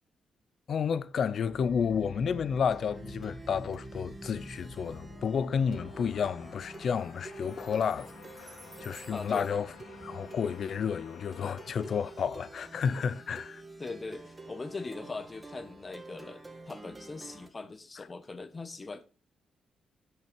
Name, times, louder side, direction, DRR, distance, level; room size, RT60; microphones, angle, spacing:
voice 1, 0.7-8.1 8.4-8.5 8.8-9.7 10.0-13.6, left 7 dB, 65° left, 0.7 m, -31 dB
Plucked string instrument, 1.4-17.5, right 2 dB, 20° right, 2.1 m, -47 dB
sound 1, 4.3-13.5, left 5 dB, 85° left, 2.3 m, -53 dB
voice 2, 9.1-9.6 13.8-19.0, left 3 dB, 30° left, 1.3 m, -41 dB
11.0 x 5.9 x 5.3 m
cardioid pair, 75°, 0 cm